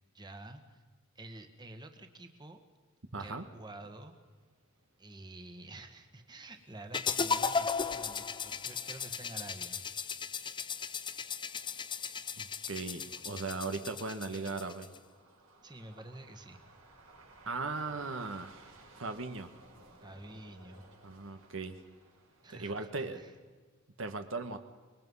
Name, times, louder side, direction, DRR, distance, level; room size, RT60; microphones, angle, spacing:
voice 1, 0.1-0.8 1.1-2.6 3.2-4.1 5.0-9.8 15.6-16.6 20.0-20.9 22.4-23.3, right 1 dB, 20° right, 6 dB, 1.7 m, -49 dB
voice 2, 3.1-3.4 12.4-14.9 17.5-18.7 19.0-19.5 21.0-21.7 22.5-23.2 24.0-24.6, right 3 dB, 65° right, 7 dB, 1.4 m, -38 dB
sound 1, 4.1-23.4, right 2 dB, 85° right, 6.0 m, -61 dB
sound 2, 6.9-15.0, left 5 dB, 20° left, 0.7 m, -36 dB
25.0 x 22.0 x 5.6 m, 1.4 s
head